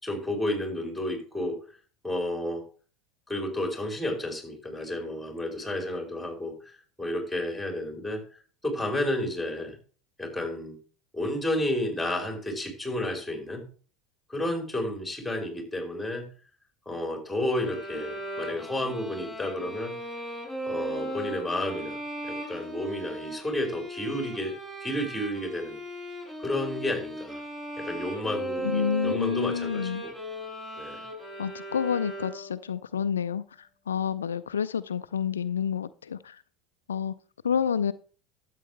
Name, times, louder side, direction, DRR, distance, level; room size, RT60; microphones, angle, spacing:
voice 1, 0.0-1.6 2.0-2.6 3.3-8.2 8.6-9.8 10.2-10.8 11.1-13.6 14.3-16.3 16.9-20.0 20.7-22.0 22.2-25.8 26.4-27.4 27.8-30.1 30.8-31.0, left 1 dB, 5° left, 4.8 m, -31 dB
sound 1, 17.6-32.7, right 1 dB, 20° right, 5.7 m, -37 dB
voice 2, 28.6-30.0 31.4-36.4 36.9-37.1 37.4-37.9, left 7 dB, 85° left, 0.4 m, -29 dB
12.5 x 8.3 x 3.3 m
hypercardioid pair, 75°, 0 cm